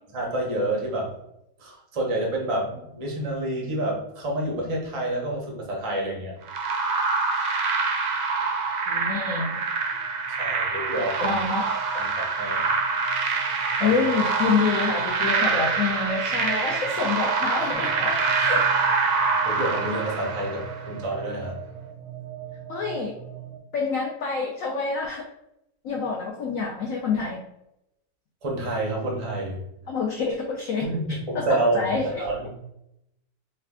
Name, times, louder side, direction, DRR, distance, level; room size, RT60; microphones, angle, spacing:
voice 1, 0.1-1.2 1.6-6.3 10.4-11.4 11.9-12.7 13.8-14.0 14.3-14.4 19.4-21.6 28.4-29.6 30.8-32.6, right 1 dB, 40° right, -1 dB, 0.4 m, -28 dB
sound 1, 6.5-20.9, right 4 dB, 70° right, 0.8 m, -25 dB
sound 2, 7.5-23.6, right 10 dB, 90° right, 1.3 m, -40 dB
voice 2, 8.9-9.6 11.2-11.7 13.8-18.7 22.7-23.1 23.7-25.2 25.8-27.4 29.9-30.9 31.3-32.2, left 5 dB, 70° left, 0 dB, 0.8 m, -27 dB
3.2 x 2.3 x 3.5 m, 0.82 s
omnidirectional pair, 1.9 m